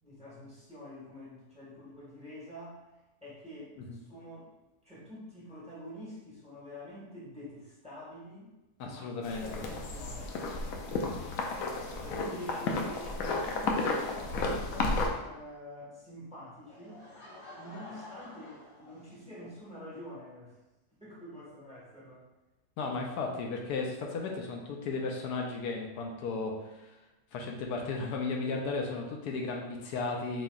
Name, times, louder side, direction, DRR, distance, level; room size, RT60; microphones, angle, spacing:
voice 1, 0.0-2.8 3.2-4.5 4.8-8.5 8.8-10.4 12.0-17.0 17.6-20.6 21.0-22.3 22.8-23.0, left 1 dB, 5° right, -8 dB, 1.2 m, -47 dB
voice 2, 8.8-9.4 22.8-26.9 27.3-30.4, left 3 dB, 85° left, 1 dB, 1.2 m, -35 dB
sound 1, 9.2-15.1, left 3 dB, 70° left, 0.9 m, -33 dB
Laughter / Crowd, 16.7-19.5, left 1 dB, 50° left, 1.3 m, -50 dB
4.2 x 3.2 x 2.3 m, 1.0 s
omnidirectional pair, 1.7 m